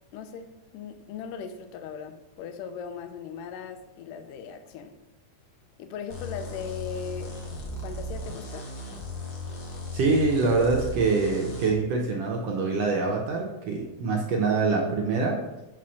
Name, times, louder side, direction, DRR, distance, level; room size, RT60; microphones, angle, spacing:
voice 1, 0.1-5.0 5.8-7.4 7.8-8.7, left 6 dB, 90° left, 8 dB, 2.3 m, -38 dB
sound 1, 6.1-11.7, left 1 dB, 55° left, 1.3 m, -37 dB
voice 2, 9.9-15.4, right 3 dB, 70° right, 0 dB, 1.6 m, -25 dB
5.7 x 4.2 x 6.3 m, 0.99 s
omnidirectional pair, 3.7 m